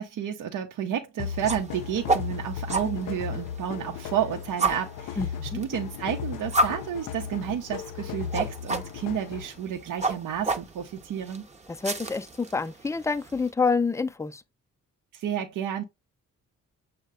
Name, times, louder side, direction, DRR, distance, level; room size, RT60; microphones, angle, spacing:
voice 1, 0.0-11.4 15.1-15.8, right 9 dB, 70° right, 0.7 m, -31 dB
sound 1, 1.2-9.6, left 8 dB, 80° left, 0.5 m, -36 dB
sound 2, 1.2-13.5, right 2 dB, 20° right, 0.7 m, -32 dB
voice 2, 5.2-5.6 11.7-14.4, left 4 dB, 10° left, 0.4 m, -27 dB
6.4 x 2.2 x 3.6 m
cardioid pair, 70°, 32 cm